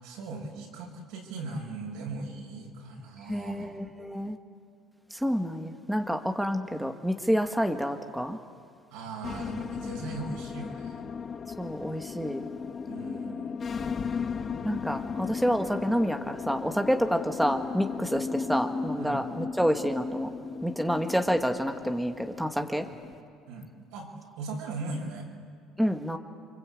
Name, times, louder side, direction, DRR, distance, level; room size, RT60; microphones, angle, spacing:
voice 1, 0.0-3.8 8.9-11.0 12.9-13.6 16.6-16.7 19.0-19.2 22.8-22.9 23.5-25.3, right 3 dB, 80° right, 0 dB, 6.7 m, -39 dB
voice 2, 3.3-4.4 5.2-8.4 11.6-12.4 14.6-20.3 20.6-22.8 25.8-26.2, equal, ahead, 4 dB, 1.5 m, -28 dB
sound 1, 9.2-23.2, left 5 dB, 35° left, 1.3 m, -36 dB
28.5 x 25.0 x 8.4 m, 2.2 s
cardioid pair, 110°, 0 cm